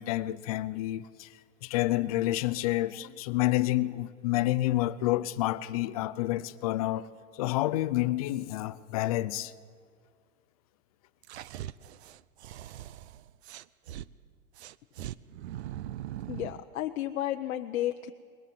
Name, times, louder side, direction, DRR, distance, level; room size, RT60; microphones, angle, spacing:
voice 1, 0.0-9.5, left 16 dB, 25° left, 0.5 m, -29 dB
sound 1, 11.2-14.1 14.6-16.6, right 13 dB, 50° right, 0.6 m, -41 dB
voice 2, 16.3-18.1, left 13 dB, 70° left, 1.0 m, -32 dB
22.0 x 21.5 x 7.5 m
supercardioid pair, 160°, 42 cm